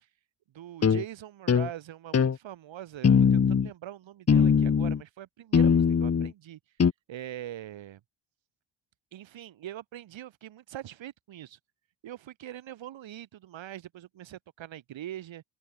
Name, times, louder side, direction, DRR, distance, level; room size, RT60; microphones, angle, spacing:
voice 1, 0.5-6.6 7.1-8.0 9.1-11.6 12.0-15.4, right 12 dB, 80° right, 7.2 m, -42 dB
sound 1, 0.8-1.0 1.5-1.7 2.1-2.4 3.0-3.7 4.3-5.0 5.5-6.3 6.8-6.9, left 6 dB, 35° left, 1.7 m, -21 dB
open air
cardioid pair, 125°, 45 cm